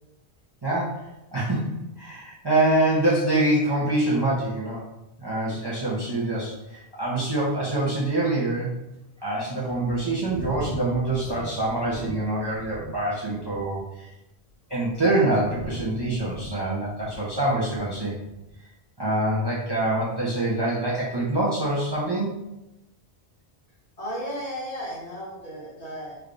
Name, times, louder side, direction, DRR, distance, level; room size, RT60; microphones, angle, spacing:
voice 1, 0.6-1.1 1.3-1.7 2.0-4.8 5.2-8.7 9.2-14.1 14.7-18.1 19.0-22.3, right 2 dB, 30° right, -6 dB, 0.6 m, -25 dB
sound 1, 7.5-7.6 8.2-8.3 8.9-9.0 9.6-13.0 13.3-13.8 14.5-18.0 18.3-18.6, equal, 70° right, 1.4 m, -40 dB
voice 2, 24.0-26.2, equal, 40° left, -5 dB, 1.0 m, -34 dB
3.4 x 2.2 x 3.7 m, 0.93 s
omnidirectional pair, 1.1 m